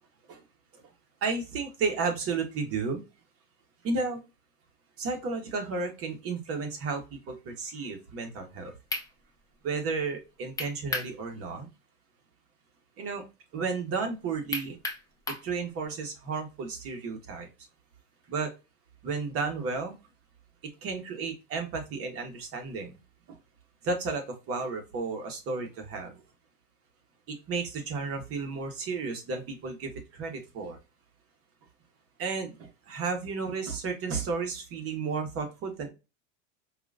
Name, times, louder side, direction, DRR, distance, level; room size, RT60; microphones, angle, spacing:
voice 1, 1.2-3.0 3.8-4.2 5.0-8.7 9.6-11.7 13.0-13.2 13.5-14.8 15.4-17.5 18.3-18.5 19.0-20.0 20.8-23.0 23.3-23.4 23.8-26.2 27.3-30.8 32.2-35.9, right 4 dB, 40° right, 4 dB, 1.3 m, -33 dB
sound 1, 8.5-8.6 8.9-9.1 10.6-11.1 11.5-11.6 14.5-15.5, left 2 dB, 10° left, 0.7 m, -33 dB
4.7 x 2.5 x 2.5 m, 0.27 s
supercardioid pair, 130°, 37 cm